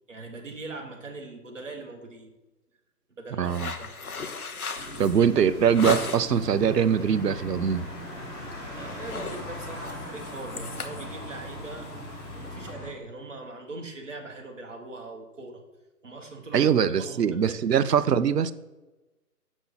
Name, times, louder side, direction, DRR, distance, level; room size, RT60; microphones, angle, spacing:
voice 1, 0.1-2.3 3.2-3.9 8.8-11.9 12.4-15.6 16.0-17.6, right 2 dB, 50° right, 2 dB, 1.5 m, -41 dB
sound 1, 3.4-6.5 6.9-7.3 7.6-7.8 8.1-8.5 8.8-12.7, left 4 dB, 60° left, 0.9 m, -36 dB
voice 2, 3.4-3.7 5.0-7.9 16.5-18.5, right 8 dB, 80° right, 14 dB, 0.7 m, -22 dB
sound 2, 4.8-12.9, equal, 45° left, 2.6 m, -39 dB
7.1 x 6.1 x 4.0 m, 1.1 s
hypercardioid pair, 175°, 48 cm